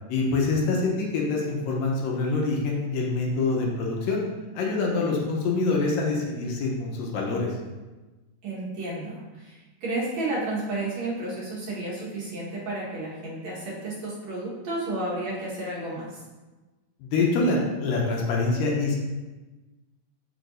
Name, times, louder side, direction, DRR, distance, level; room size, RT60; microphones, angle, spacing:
voice 1, 0.1-4.2 4.5-7.5 17.0-19.0, left 3 dB, 75° left, -1 dB, 2.5 m, -25 dB
voice 2, 8.4-16.2, right 2 dB, 55° right, -7 dB, 2.4 m, -32 dB
6.8 x 6.4 x 2.6 m, 1.2 s
omnidirectional pair, 4.2 m